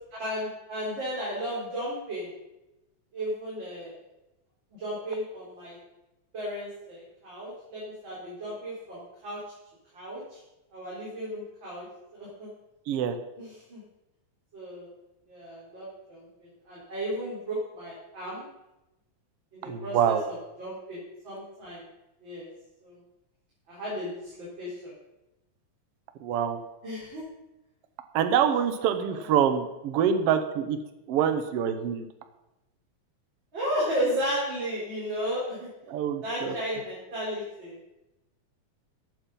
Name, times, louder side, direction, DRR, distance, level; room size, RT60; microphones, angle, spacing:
voice 1, 0.2-2.3 3.1-4.0 4.7-5.8 6.3-9.4 9.9-10.4 10.7-11.9 12.1-12.5 13.4-13.8 14.5-14.9 15.3-18.5 19.5-21.8 22.2-22.5 22.8-23.0 23.7-24.9 26.8-27.2 28.7-28.8 29.1-29.3 33.5-35.7 36.2-37.8, equal, 40° right, -7 dB, 4.5 m, -34 dB
voice 2, 12.9-13.2 19.6-20.2 26.2-26.6 28.1-30.8 31.1-32.1 35.9-36.5, right 8 dB, 65° right, 8 dB, 1.6 m, -25 dB
14.5 x 8.6 x 5.4 m, 0.96 s
omnidirectional pair, 3.5 m